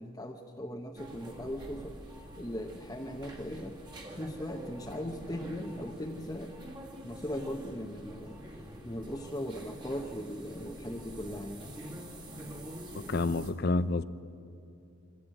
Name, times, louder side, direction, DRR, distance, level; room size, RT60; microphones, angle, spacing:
voice 1, 0.0-2.0 2.4-3.8 4.2-6.5 7.0-11.6, equal, 15° left, 1.0 m, -39 dB
sound 1, 1.0-13.5, equal, 20° right, 1.9 m, -46 dB
voice 2, 12.9-14.0, left 3 dB, 50° left, 0.6 m, -29 dB
23.5 x 15.5 x 9.1 m
head